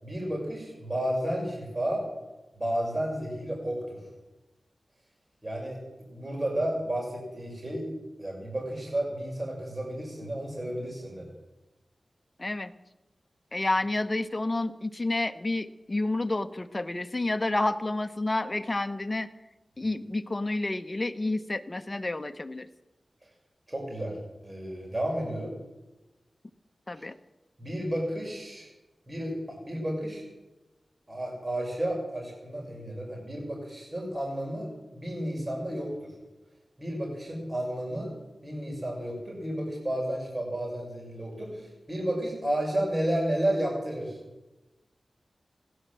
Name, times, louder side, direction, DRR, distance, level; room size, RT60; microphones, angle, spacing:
voice 1, 0.0-2.0 2.5-4.0 5.4-7.9 8.2-11.3 23.7-24.2 24.4-25.5 26.9-27.0 27.6-28.7 29.1-30.2 31.1-36.1 36.8-38.1 38.4-44.2, right 1 dB, 35° right, -1 dB, 6.1 m, -32 dB
voice 2, 12.4-12.7 13.5-19.3 19.8-22.7 26.9-27.2, left 2 dB, 35° left, 10 dB, 1.0 m, -29 dB
16.5 x 11.5 x 7.7 m, 1.0 s
cardioid pair, 50°, 0 cm